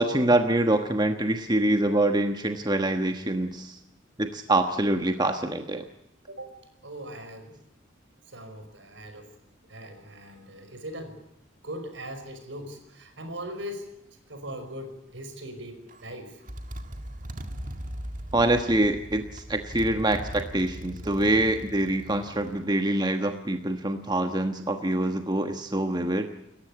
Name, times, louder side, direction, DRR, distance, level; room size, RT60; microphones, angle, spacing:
voice 1, 0.0-3.8 4.2-5.8 18.3-26.3, right 1 dB, 20° right, 6 dB, 1.3 m, -25 dB
voice 2, 6.8-7.6 8.3-9.3 9.7-11.2 11.6-13.9 14.3-16.4, equal, 70° right, 8 dB, 5.4 m, -40 dB
Motorcycle, 15.9-16.1 16.5-22.6, equal, 40° right, 1.9 m, -39 dB
29.0 x 15.0 x 8.6 m, 0.84 s
head